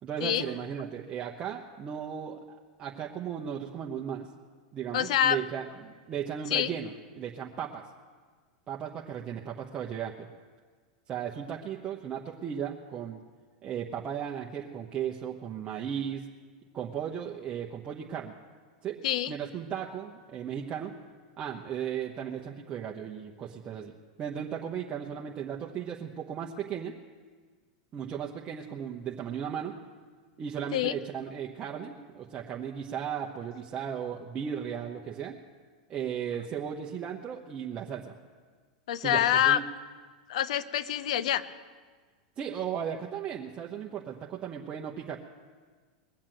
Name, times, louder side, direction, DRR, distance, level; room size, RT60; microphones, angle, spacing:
voice 1, 0.0-4.3 4.7-7.8 8.7-10.3 11.1-13.2 13.6-16.3 16.7-18.4 18.8-19.0 19.3-20.9 21.4-23.9 24.2-27.0 27.9-29.7 30.4-35.3 35.9-38.1 39.0-39.6 42.4-45.2, right 8 dB, 30° right, -1 dB, 1.1 m, -36 dB
voice 2, 4.9-5.4 6.5-6.7 19.0-19.3 30.7-30.9 38.9-39.6 40.3-41.5, left 11 dB, 75° left, 15 dB, 0.7 m, -26 dB
20.5 x 7.4 x 7.7 m, 1.5 s
hypercardioid pair, 115°, 4 cm